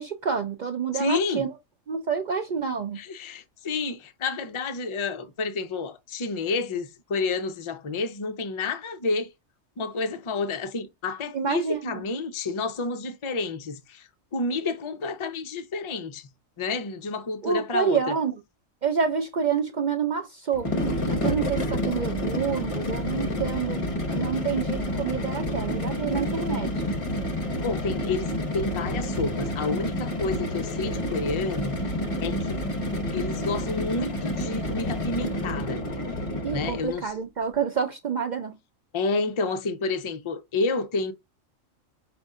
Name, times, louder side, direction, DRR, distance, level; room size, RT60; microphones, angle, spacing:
voice 1, 0.0-1.5 1.9-3.0 11.3-11.9 17.4-18.3 18.8-23.8 24.1-26.7 36.4-38.5, right 6 dB, 65° right, 0.4 m, -28 dB
voice 2, 0.9-1.5 2.9-9.3 9.8-16.3 16.6-18.1 27.6-31.8 32.2-32.6 33.1-35.8 36.5-37.1 38.9-41.1, left 3 dB, 50° left, 0.3 m, -30 dB
sound 1, 20.5-37.0, left 1 dB, 30° left, 0.7 m, -29 dB
5.3 x 2.6 x 3.5 m
omnidirectional pair, 1.4 m